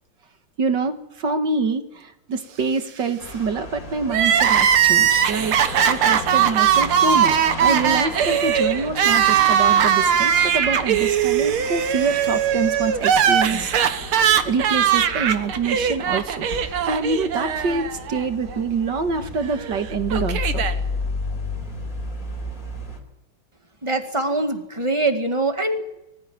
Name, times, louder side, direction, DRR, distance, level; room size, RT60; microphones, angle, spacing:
voice 1, 0.6-5.6 5.9-13.7 14.0-14.1 14.4-20.6, right 4 dB, 55° right, 7 dB, 2.3 m, -26 dB
sound 1, 3.2-23.0, left 2 dB, 40° left, 4.8 m, -34 dB
Crying sobbing, 4.1-18.2 18.5-18.6 19.6-20.7, right 8 dB, 80° right, 2.1 m, -20 dB
voice 2, 23.8-25.8, right 2 dB, 15° right, 5 dB, 2.0 m, -23 dB
24.5 x 15.5 x 9.5 m, 0.86 s
omnidirectional pair, 2.3 m